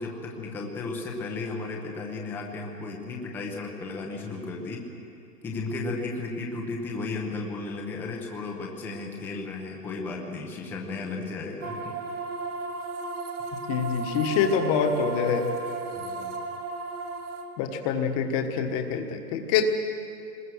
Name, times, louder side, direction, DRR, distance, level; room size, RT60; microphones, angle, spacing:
voice 1, 0.0-4.9 5.4-11.9 16.0-16.3, left 3 dB, 5° left, 0 dB, 0.8 m, -34 dB
sound 1, 11.6-17.4, right 3 dB, 65° right, 3.1 m, -34 dB
voice 2, 13.7-15.5 17.6-19.8, left 6 dB, 20° left, 6 dB, 1.4 m, -25 dB
25.5 x 21.0 x 6.3 m, 2.7 s
hypercardioid pair, 165°, 48 cm